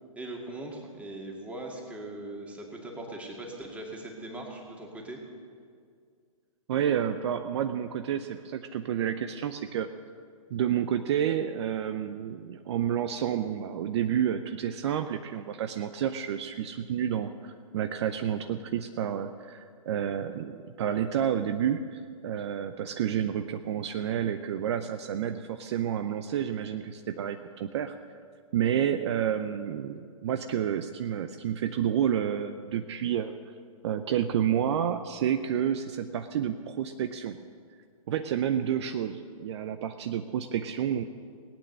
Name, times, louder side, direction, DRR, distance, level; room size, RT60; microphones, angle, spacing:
voice 1, 0.2-5.2, right 1 dB, 5° right, -1 dB, 2.1 m, -40 dB
voice 2, 6.7-9.9 10.5-28.0 28.5-33.3 33.8-37.4 38.1-41.0, right 9 dB, 50° right, 8 dB, 0.6 m, -30 dB
18.0 x 8.9 x 6.5 m, 2.2 s
hypercardioid pair, 130°, 18 cm